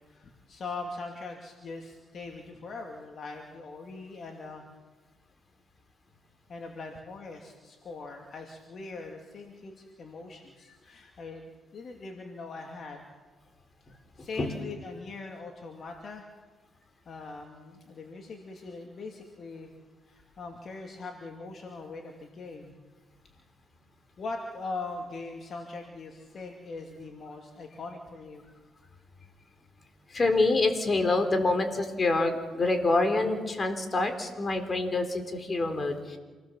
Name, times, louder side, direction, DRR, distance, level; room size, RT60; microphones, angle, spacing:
voice 1, 0.0-4.6 6.5-13.0 14.2-16.3 17.1-19.7 20.1-22.8 24.2-28.4, left 3 dB, 50° left, 2 dB, 2.6 m, -41 dB
voice 2, 30.1-36.2, left 2 dB, 35° left, 6 dB, 3.9 m, -26 dB
28.0 x 19.0 x 7.4 m, 1.3 s
cardioid pair, 90°, 0 cm